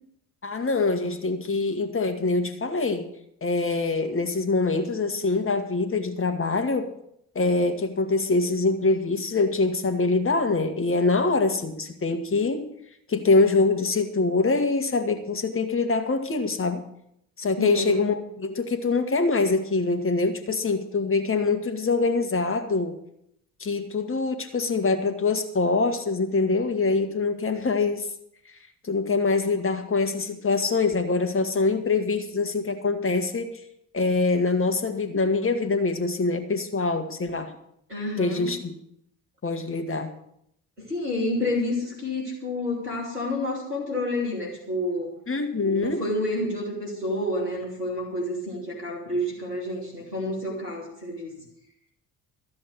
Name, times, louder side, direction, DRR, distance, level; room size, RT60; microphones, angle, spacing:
voice 1, 0.4-3.1 3.4-6.9 7.3-12.7 13.1-16.8 17.4-23.0 23.6-28.1 28.8-33.6 33.9-37.5 38.2-38.7 39.4-40.1 45.3-46.0, left 3 dB, 25° left, 7 dB, 1.8 m, -24 dB
voice 2, 17.6-18.1 37.9-38.5 40.8-45.1 45.6-51.3, left 1 dB, 90° right, -2 dB, 2.9 m, -29 dB
13.5 x 7.8 x 7.6 m, 0.73 s
figure-of-eight pair, 45°, 46 cm